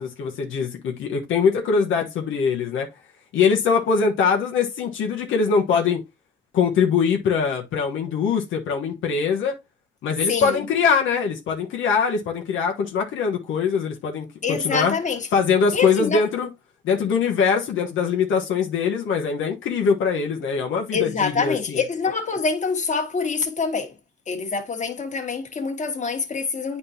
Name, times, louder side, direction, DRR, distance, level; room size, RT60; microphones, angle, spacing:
voice 1, 0.0-2.9 3.3-6.0 6.5-9.6 10.0-14.9 15.3-16.5 16.8-21.8, left 6 dB, 80° left, 1.1 m, -22 dB
voice 2, 10.2-10.6 14.4-15.3 15.7-16.2 20.9-23.9 24.3-26.8, left 5 dB, 35° left, 1.7 m, -25 dB
9.0 x 4.3 x 2.7 m
cardioid pair, 90°, 20 cm